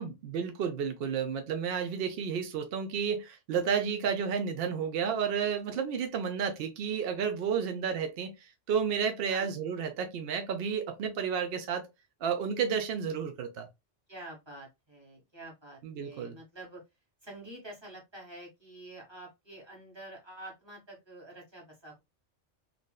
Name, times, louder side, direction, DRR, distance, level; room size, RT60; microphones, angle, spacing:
voice 1, 0.0-11.9 12.2-13.7 15.8-16.4, right 7 dB, 60° right, 0.7 m, -31 dB
voice 2, 14.1-16.8 17.2-22.0, right 1 dB, 20° right, 1.2 m, -48 dB
3.3 x 2.5 x 2.2 m
omnidirectional pair, 1.3 m